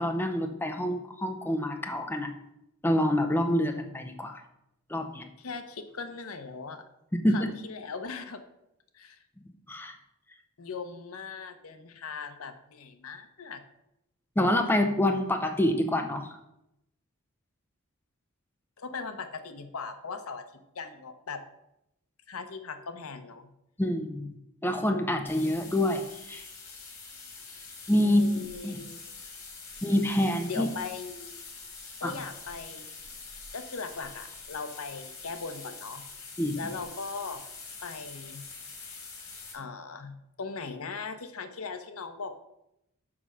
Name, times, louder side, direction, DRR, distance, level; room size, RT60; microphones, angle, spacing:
voice 1, 0.0-2.3 2.8-4.4 4.9-5.3 7.2-7.5 9.7-9.9 14.4-16.3 23.8-24.3 24.6-26.5 27.9-28.2 28.6-28.8 29.8-30.7 32.0-32.2 36.4-36.6, left 1 dB, 10° left, 5 dB, 0.6 m, -26 dB
voice 2, 5.4-6.8 7.3-8.4 8.9-9.2 10.6-13.6 18.8-20.4 20.7-21.4 22.3-23.5 28.0-29.0 30.5-31.4 32.0-32.9 33.5-36.0 36.6-37.4 37.8-38.4 39.5-42.4, left 4 dB, 75° left, 9 dB, 0.8 m, -39 dB
sound 1, 25.3-39.5, left 4 dB, 90° left, 2.4 m, -45 dB
6.0 x 5.4 x 6.1 m, 0.84 s
head